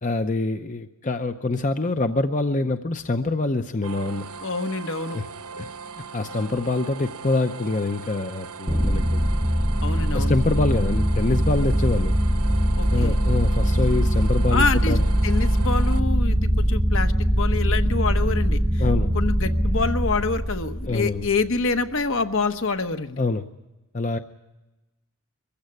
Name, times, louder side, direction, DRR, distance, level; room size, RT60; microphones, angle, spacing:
voice 1, 0.0-4.3 5.1-5.3 5.6-5.7 6.1-9.2 10.1-12.1 12.9-15.0 18.8-19.1 20.9-21.2 23.2-23.5 23.9-24.2, left 2 dB, 35° left, 8 dB, 0.7 m, -25 dB
sound 1, 3.8-16.0, right 5 dB, 90° right, 0.9 m, -39 dB
voice 2, 4.4-5.2 9.8-10.3 12.8-13.2 14.5-15.0 15.2-18.8 19.1-23.2, left 4 dB, 60° left, 8 dB, 1.2 m, -26 dB
sound 2, 8.7-21.5, equal, 10° right, 0.7 m, -22 dB
23.0 x 15.5 x 9.6 m, 1.0 s
head